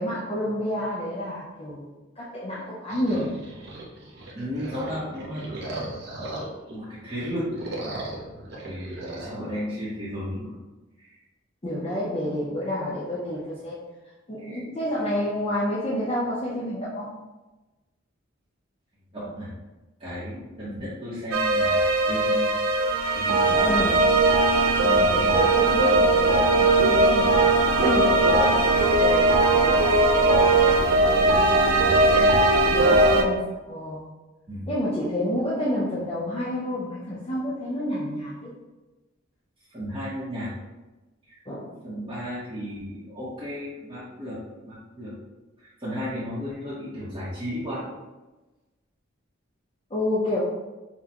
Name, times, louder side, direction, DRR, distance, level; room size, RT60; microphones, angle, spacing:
voice 1, 0.0-1.9 2.2-3.3 11.6-13.8 14.3-17.1 23.5-24.0 24.8-27.5 27.8-30.8 31.2-31.4 32.7-34.0 34.7-38.5 41.5-41.7 49.9-50.4, left 1 dB, 25° left, -8 dB, 0.6 m, -29 dB
sound 1, 2.9-6.8 7.1-9.3, right 1 dB, 50° right, 0.7 m, -37 dB
voice 2, 4.3-5.4 5.8-6.4 6.7-7.5 7.8-8.0 8.7-10.5 11.0-11.1 14.4-14.6 19.1-19.5 20.0-22.5 23.1-23.9 24.9-25.4 31.7-32.5 34.5-34.7 39.7-40.5 41.2-41.4 41.8-45.1 45.6-47.9, equal, 25° right, -11 dB, 0.9 m, -34 dB
sound 2, 21.3-33.2, right 2 dB, 90° right, 0.5 m, -19 dB
5.9 x 2.2 x 2.9 m, 1.1 s
head